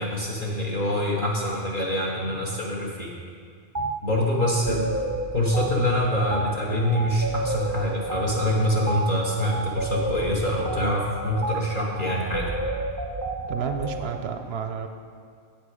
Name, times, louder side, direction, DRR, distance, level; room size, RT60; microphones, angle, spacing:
voice 1, 0.0-3.1 4.0-4.9 5.3-12.5, left 1 dB, 45° left, -3 dB, 1.1 m, -25 dB
sound 1, 3.7-3.9 4.4-14.1, right 2 dB, 30° right, 0.3 m, -31 dB
voice 2, 13.5-14.9, right 6 dB, 65° right, 7 dB, 0.7 m, -30 dB
8.7 x 8.1 x 4.9 m, 2.2 s
omnidirectional pair, 1.3 m